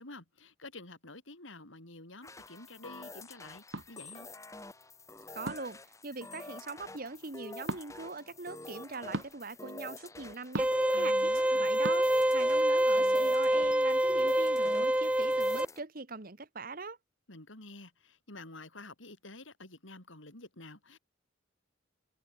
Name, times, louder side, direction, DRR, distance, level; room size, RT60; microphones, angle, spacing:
voice 1, 0.0-4.3 10.9-11.7 17.3-21.0, left 2 dB, 80° left, 5.6 m, -49 dB
sound 1, 2.2-15.8, left 2 dB, 15° left, 2.1 m, -47 dB
sound 2, 3.7-3.9 5.4-5.8 7.6-7.8 9.1-9.3 10.5-10.9 11.8-12.0, right 2 dB, 75° right, 2.4 m, -36 dB
voice 2, 5.3-17.0, right 3 dB, 45° right, 1.4 m, -42 dB
sound 3, 10.6-15.7, right 1 dB, 5° right, 0.7 m, -26 dB
head